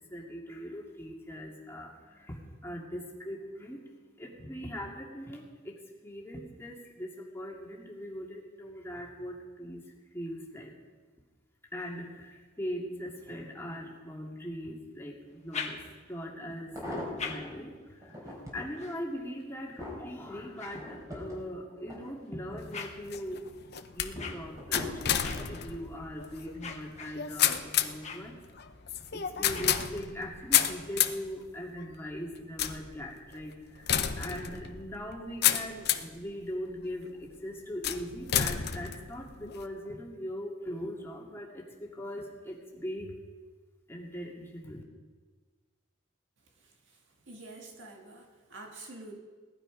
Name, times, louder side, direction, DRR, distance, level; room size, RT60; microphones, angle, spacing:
voice 1, 0.0-9.8 10.1-10.7 11.7-15.8 16.1-23.4 23.9-28.4 29.1-43.1 43.9-44.8, equal, 15° left, -2 dB, 2.3 m, -40 dB
sound 1, 15.3-16.3 16.9-21.5 22.1-30.3, left 5 dB, 35° left, 1.4 m, -46 dB
sound 2, 15.8-15.9 16.5-17.5 18.0-18.7 19.2-22.6 23.0-23.5 24.2-25.5 26.3-26.6 26.9-27.0, left 1 dB, 15° right, 4.2 m, -42 dB
sound 3, 22.6-36.2 36.8-37.2 37.8-39.7, left 10 dB, 55° left, 0.7 m, -31 dB
voice 2, 46.6-47.0 47.2-49.2, right 2 dB, 70° right, 1 dB, 2.1 m, -47 dB
18.5 x 12.0 x 5.1 m, 1.4 s
head